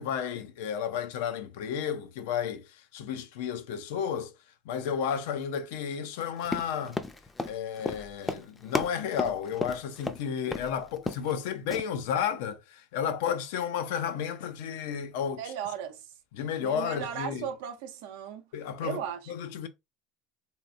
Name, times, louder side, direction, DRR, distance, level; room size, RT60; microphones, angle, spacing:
voice 1, 0.0-4.3 4.7-7.0 7.4-15.5 16.3-17.5 18.5-19.0 19.3-19.7, left 8 dB, 75° left, 0.5 m, -32 dB
Run, 6.4-10.2 10.5-10.7 11.0-11.4 11.7-11.8, left 3 dB, 15° left, 0.5 m, -33 dB
voice 2, 15.4-16.1 16.6-18.5 18.8-19.3, right 9 dB, 75° right, 0.7 m, -36 dB
3.2 x 2.9 x 2.5 m
hypercardioid pair, 80°, 0 cm